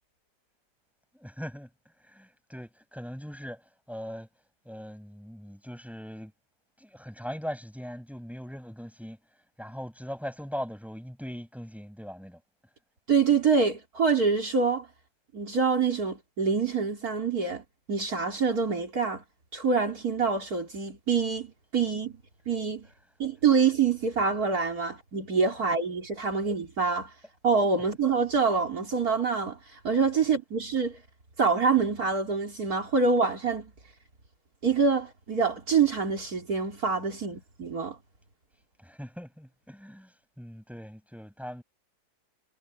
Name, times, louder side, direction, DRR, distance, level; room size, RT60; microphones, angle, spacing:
voice 1, 1.2-1.7 2.0-3.6 3.9-4.3 4.7-6.3 6.8-9.2 9.6-12.4 26.4-26.5 38.8-41.6, equal, ahead, 7.1 m, -40 dB
voice 2, 13.1-14.9 15.3-19.2 19.5-22.9 23.2-27.1 27.4-31.0 31.4-33.7 34.6-38.0, right 5 dB, 55° right, 4.0 m, -26 dB
omnidirectional pair, 1.9 m